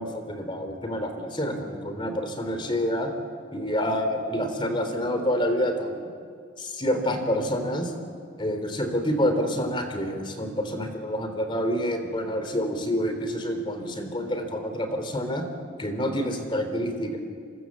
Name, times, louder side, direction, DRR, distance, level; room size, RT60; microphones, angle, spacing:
voice 1, 0.0-3.1 3.5-6.0 6.6-7.9 8.4-15.4 15.8-17.2, equal, 25° left, 6 dB, 3.3 m, -27 dB
29.0 x 25.0 x 7.4 m, 2.1 s
head